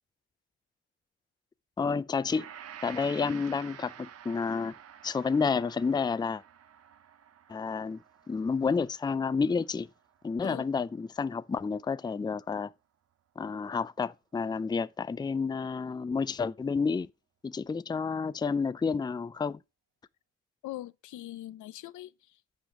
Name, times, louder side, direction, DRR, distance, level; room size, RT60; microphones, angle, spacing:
voice 1, 1.8-2.5 2.8-4.7 5.0-6.4 7.5-8.0 8.3-9.9 10.2-12.7 13.4-17.1 17.4-19.6, left 5 dB, 15° left, 0.4 m, -30 dB
Gong, 2.3-10.7 11.1-11.2, right 9 dB, 50° right, 0.9 m, -50 dB
voice 2, 20.6-22.4, left 15 dB, 75° left, 0.6 m, -42 dB
8.5 x 5.0 x 6.0 m
cardioid pair, 90°, 30 cm